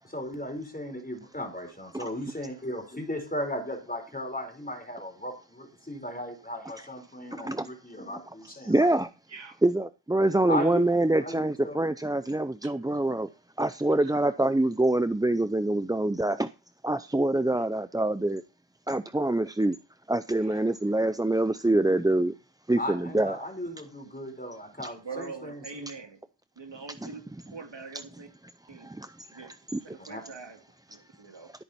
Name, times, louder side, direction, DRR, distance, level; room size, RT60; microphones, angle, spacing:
voice 1, 0.1-8.9 10.5-11.8 22.8-25.6 30.1-30.2, left 1 dB, 20° left, 4.2 m, -36 dB
voice 2, 8.7-9.1 9.6-13.3 13.6-16.5 16.8-18.4 18.9-19.8 20.1-22.3 22.7-23.5 27.0-27.1 29.0-29.1 29.4-29.8, right 1 dB, 10° right, 0.5 m, -25 dB
voice 3, 9.3-9.6 10.5-10.8 12.6-12.8 13.8-14.2 17.6-17.7 20.3-20.6 22.9-23.2 24.0-24.1 24.8-26.2 26.6-28.3 28.7-28.9 29.3-29.5 29.8-31.5, right 4 dB, 70° right, 2.4 m, -44 dB
13.5 x 8.7 x 4.2 m
wide cardioid pair, 75°, 44 cm